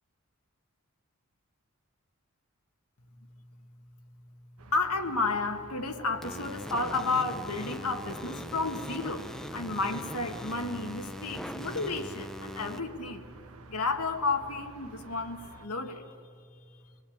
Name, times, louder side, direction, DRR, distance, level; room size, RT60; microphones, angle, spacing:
sound 1, 4.6-15.7, right 3 dB, 80° right, 1.3 m, -52 dB
voice 1, 4.7-13.3 13.7-16.1, left 3 dB, 90° left, 6 dB, 1.8 m, -32 dB
sound 2, 6.2-12.8, equal, ahead, 0.8 m, -41 dB
26.0 x 20.0 x 8.7 m, 2.3 s
head